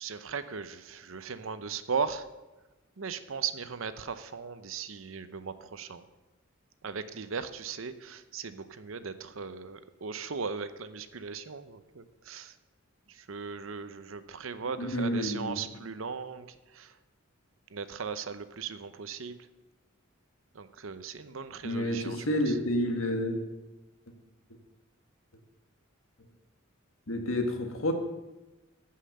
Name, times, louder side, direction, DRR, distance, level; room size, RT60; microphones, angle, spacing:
voice 1, 0.0-2.3 3.0-6.0 6.8-12.5 13.1-16.9 17.7-19.5 20.5-22.6, right 5 dB, 75° right, 12 dB, 0.7 m, -38 dB
voice 2, 14.8-15.6 21.6-23.4 27.1-27.9, left 1 dB, 75° left, 4 dB, 1.6 m, -29 dB
15.0 x 5.7 x 6.6 m, 1.1 s
head